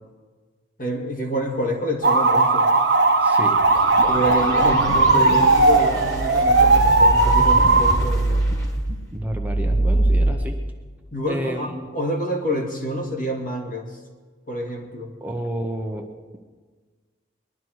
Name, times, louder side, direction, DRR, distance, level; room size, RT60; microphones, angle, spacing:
voice 1, 0.8-2.7 4.1-8.4 11.1-13.9 14.5-15.1, equal, 45° left, 1 dB, 2.2 m, -27 dB
sound 1, 2.0-8.0, right 3 dB, 65° right, 1.0 m, -17 dB
voice 2, 3.2-3.6 9.1-10.6 11.3-12.0 15.2-16.4, equal, 10° right, 2 dB, 0.9 m, -31 dB
sound 2, 3.4-10.3, right 1 dB, 20° left, 2.0 m, -24 dB
20.5 x 12.0 x 4.7 m, 1.4 s
head